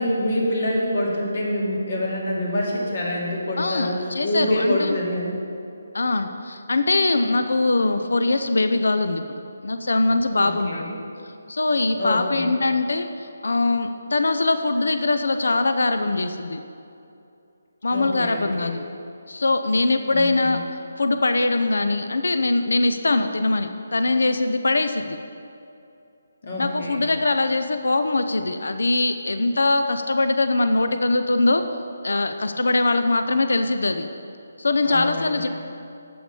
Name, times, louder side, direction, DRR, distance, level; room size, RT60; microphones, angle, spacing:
voice 1, 0.0-5.4 10.3-11.0 12.0-12.5 17.9-18.7 20.1-20.6 26.4-27.1 34.8-35.5, left 1 dB, 55° left, -3 dB, 2.5 m, -26 dB
voice 2, 3.6-5.0 5.9-9.2 9.6-10.9 11.5-16.6 17.8-18.8 19.3-20.6 21.0-25.2 26.6-31.6 32.0-34.1 34.6-35.5, left 2 dB, 80° left, 8 dB, 0.5 m, -22 dB
7.9 x 6.0 x 6.9 m, 2.7 s
figure-of-eight pair, 160°, 0 cm